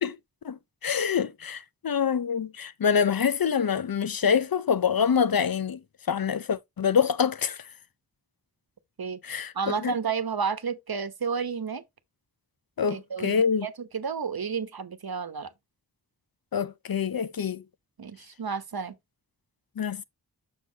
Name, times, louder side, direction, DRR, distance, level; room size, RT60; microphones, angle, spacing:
voice 1, 0.4-5.8 6.1-7.6 9.2-9.5 9.8-9.9 12.8-13.7 16.5-17.6 19.8-20.0, left 7 dB, 65° left, 0.7 m, -26 dB
voice 2, 9.5-11.8 12.9-15.5 18.0-19.0, right 6 dB, 70° right, 1.0 m, -31 dB
6.6 x 6.3 x 2.8 m
wide cardioid pair, 50°, 38 cm